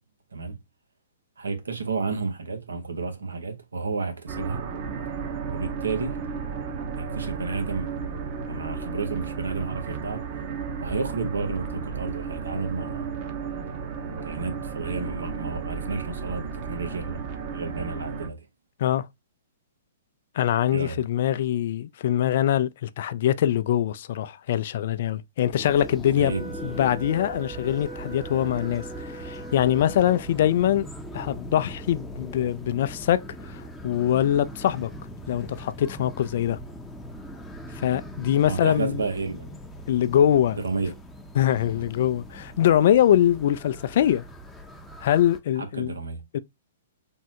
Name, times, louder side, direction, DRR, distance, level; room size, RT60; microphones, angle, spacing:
voice 1, 1.4-4.7 5.5-6.2 7.0-10.3 10.8-13.2 14.2-17.2 17.5-18.5 20.7-21.1 26.1-26.7 38.4-39.6 40.5-40.9 41.5-41.7 45.6-46.2, right 4 dB, 90° right, 0.8 m, -31 dB
sound 1, 4.3-18.3, right 5 dB, 40° right, 0.7 m, -34 dB
voice 2, 20.4-26.3 26.6-30.9 31.1-34.9 35.3-36.6 37.8-39.0 39.9-40.6 41.4-44.2 45.0-45.9 46.3-46.4, left 11 dB, 60° left, 0.3 m, -23 dB
sound 2, 25.5-45.4, equal, 5° left, 0.6 m, -40 dB
Wind instrument woodwind instrument, 26.2-30.6, right 4 dB, 65° right, 1.3 m, -42 dB
3.6 x 2.0 x 2.8 m
hypercardioid pair, 130°, 0 cm